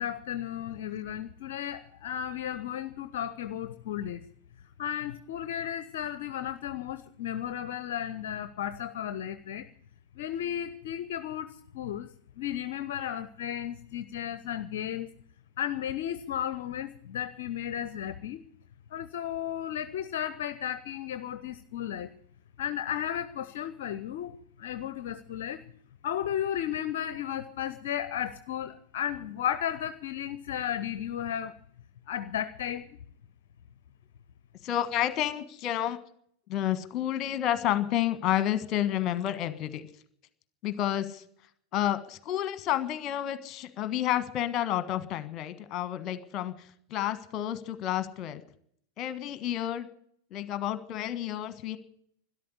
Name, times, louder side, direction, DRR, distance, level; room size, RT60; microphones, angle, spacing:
voice 1, 0.0-4.2 4.8-9.7 10.2-12.1 12.4-15.1 15.6-18.4 18.9-22.1 22.6-25.6 26.0-31.5 32.1-32.9, left 10 dB, 55° left, 12 dB, 0.7 m, -34 dB
voice 2, 34.6-36.0 36.5-39.9 40.6-41.2 41.7-48.4 49.0-49.9 50.3-51.8, left 12 dB, 35° left, 12 dB, 1.4 m, -30 dB
13.0 x 11.5 x 9.6 m, 0.65 s
figure-of-eight pair, 90°, 0 cm